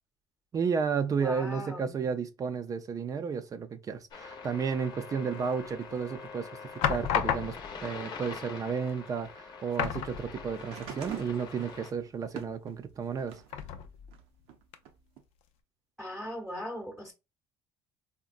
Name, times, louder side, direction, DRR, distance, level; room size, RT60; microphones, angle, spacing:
voice 1, 0.5-13.4, right 6 dB, 35° right, 0.4 m, -32 dB
voice 2, 1.2-2.0 16.0-17.1, left 1 dB, 5° right, 0.8 m, -39 dB
sound 1, 4.1-11.9, left 5 dB, 45° left, 0.7 m, -45 dB
sound 2, 5.6-6.0 6.8-7.9 8.8-8.9 9.2-9.4 9.7-10.7 11.1-11.2 13.5-14.2 14.7-14.8, left 9 dB, 75° left, 0.5 m, -32 dB
sound 3, 10.5-13.6 14.1-15.2 16.2-16.3, right 8 dB, 75° right, 0.6 m, -45 dB
3.8 x 2.2 x 2.4 m
cardioid pair, 105°, 11 cm